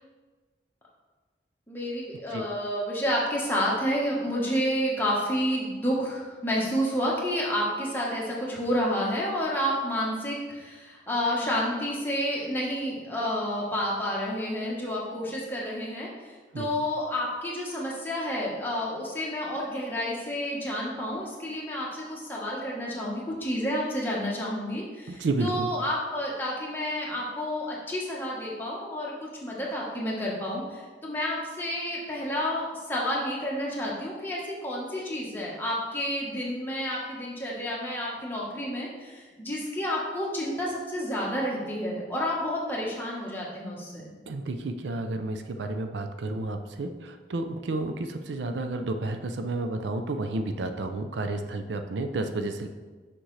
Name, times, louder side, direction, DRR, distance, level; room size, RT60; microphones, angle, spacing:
voice 1, 1.7-32.6 32.9-44.1, equal, 10° left, -4 dB, 1.1 m, -30 dB
voice 2, 25.1-25.7 44.3-52.7, right 2 dB, 85° right, 7 dB, 0.5 m, -31 dB
6.3 x 5.9 x 3.2 m, 1.4 s
head